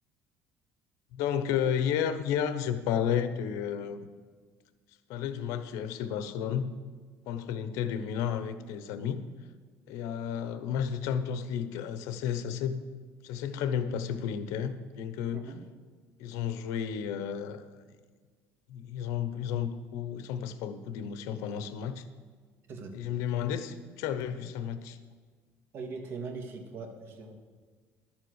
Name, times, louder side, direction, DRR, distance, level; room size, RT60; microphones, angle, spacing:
voice 1, 1.1-4.1 5.1-6.7 7.3-9.2 9.9-12.8 13.2-15.4 16.2-17.7 18.7-22.0 22.9-25.0, left 8 dB, 85° left, 11 dB, 0.8 m, -32 dB
voice 2, 15.3-15.6 22.7-22.9 25.7-27.3, right 4 dB, 50° right, 3 dB, 1.9 m, -40 dB
11.5 x 7.5 x 6.4 m, 1.5 s
cardioid pair, 135°, 5 cm